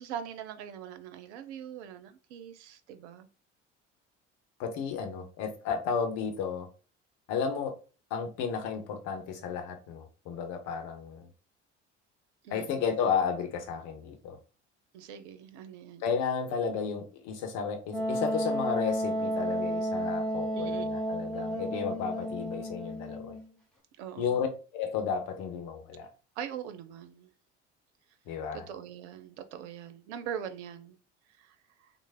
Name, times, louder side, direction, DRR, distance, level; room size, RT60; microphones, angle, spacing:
voice 1, 0.0-3.3 12.4-12.8 14.9-16.1 20.5-20.9 24.0-24.4 26.4-27.3 28.5-31.0 31.4-31.6, right 9 dB, 70° right, 0.5 m, -42 dB
voice 2, 4.6-6.7 7.3-7.8 8.1-11.3 12.5-14.4 16.0-23.3 24.2-24.5 24.7-26.1 28.3-28.6, left 6 dB, 60° left, 0.9 m, -33 dB
Wind instrument woodwind instrument, 17.9-23.5, equal, ahead, 1.1 m, -32 dB
3.2 x 2.0 x 3.4 m
figure-of-eight pair, 60°, 36 cm